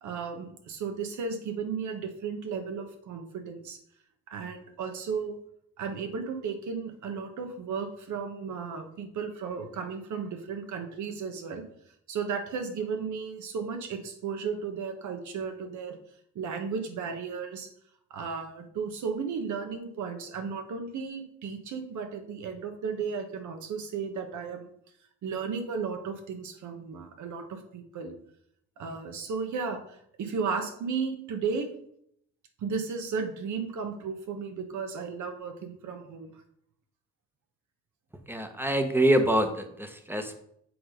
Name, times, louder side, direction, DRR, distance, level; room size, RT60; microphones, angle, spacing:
voice 1, 0.0-3.8 4.3-5.4 5.8-11.6 12.1-16.0 16.3-17.7 18.1-24.7 25.2-28.1 28.8-31.7 32.6-36.3, right 5 dB, 75° right, 5 dB, 1.4 m, -34 dB
voice 2, 38.3-40.4, right 1 dB, 5° right, 7 dB, 1.0 m, -25 dB
7.6 x 4.3 x 5.2 m, 0.71 s
cardioid pair, 90°, 30 cm